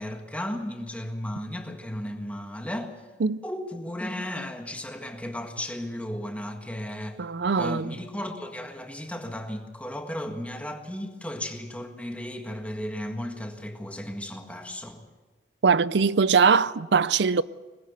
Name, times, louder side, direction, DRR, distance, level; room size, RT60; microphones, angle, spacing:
voice 1, 0.0-2.9 3.4-7.2 7.5-15.0, left 1 dB, 10° left, 1.7 m, -35 dB
voice 2, 7.2-7.9 15.6-17.4, right 5 dB, 75° right, 0.6 m, -21 dB
21.0 x 15.5 x 8.2 m
head